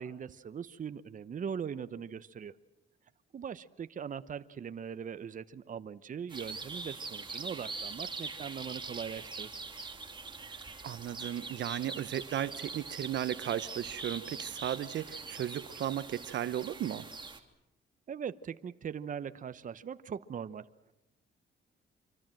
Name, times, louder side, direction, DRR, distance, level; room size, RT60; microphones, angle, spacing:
voice 1, 0.0-2.5 3.3-9.5 18.1-20.9, right 7 dB, 40° right, 0.9 m, -40 dB
sound 1, 6.3-17.4, right 4 dB, 25° right, 2.9 m, -43 dB
voice 2, 10.8-17.1, right 11 dB, 65° right, 1.0 m, -35 dB
26.0 x 25.0 x 7.7 m
cardioid pair, 90°, 20 cm